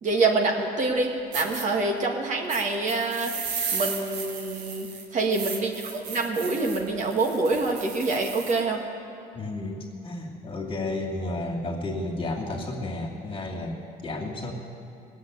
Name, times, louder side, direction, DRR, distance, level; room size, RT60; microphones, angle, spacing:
voice 1, 0.0-3.3 3.7-4.9 5.1-8.8, right 3 dB, 45° right, 1 dB, 1.9 m, -26 dB
sound 1, 0.9-1.0 1.3-1.6 2.5-8.6, right 6 dB, 90° right, 1.7 m, -35 dB
voice 2, 9.3-14.5, left 2 dB, 30° left, -1 dB, 2.6 m, -32 dB
18.0 x 7.9 x 9.4 m, 2.6 s
cardioid pair, 110°, 17 cm